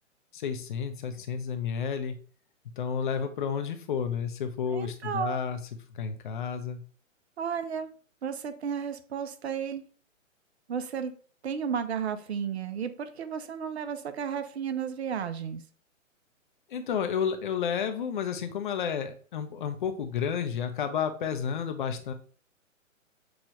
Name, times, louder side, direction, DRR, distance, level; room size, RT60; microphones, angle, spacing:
voice 1, 0.3-2.2 2.8-5.6 5.9-6.8 16.7-22.1, left 7 dB, 40° left, 8 dB, 0.6 m, -31 dB
voice 2, 4.7-5.4 7.4-7.9 8.2-9.8 10.7-11.2 11.4-15.6, right 7 dB, 55° right, 10 dB, 0.6 m, -33 dB
6.2 x 2.3 x 3.1 m, 0.43 s
figure-of-eight pair, 130°, 40 cm